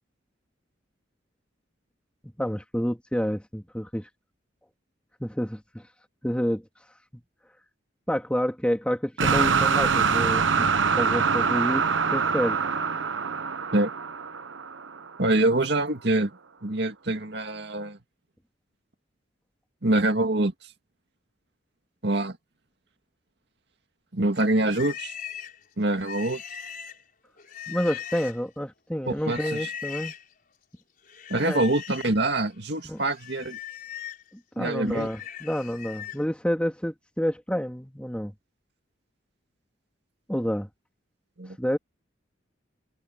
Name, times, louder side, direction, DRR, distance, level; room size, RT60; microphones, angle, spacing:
voice 1, 2.2-4.1 5.2-5.9 6.2-6.6 8.1-10.7 11.0-11.8 12.1-12.6 27.7-30.1 31.5-31.7 32.8-33.0 34.6-38.3 40.3-40.7 41.6-41.8, equal, 5° left, 2.4 m, -29 dB
sound 1, 9.2-15.2, right 5 dB, 80° right, 1.0 m, -24 dB
voice 2, 15.2-16.3 16.6-18.0 19.8-20.5 22.0-22.4 24.1-25.1 25.8-26.4 29.1-29.7 31.3-33.6 34.6-35.1 41.4-41.6, right 2 dB, 60° right, 2.3 m, -25 dB
Livestock farm animals working animals, 24.3-28.6 29.2-30.3 31.1-32.2 32.6-36.3, left 9 dB, 45° left, 5.1 m, -40 dB
head